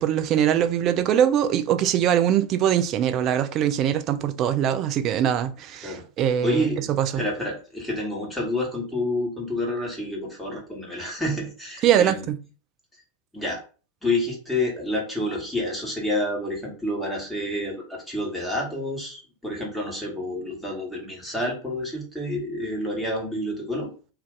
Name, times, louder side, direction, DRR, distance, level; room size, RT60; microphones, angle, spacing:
voice 1, 0.0-7.2 11.8-12.4, right 10 dB, 35° right, 0.3 m, -22 dB
voice 2, 6.4-6.9 7.1-12.3 13.3-13.6 14.0-23.9, left 1 dB, 5° left, 1.2 m, -28 dB
2.5 x 2.2 x 3.7 m
figure-of-eight pair, 90°, 0 cm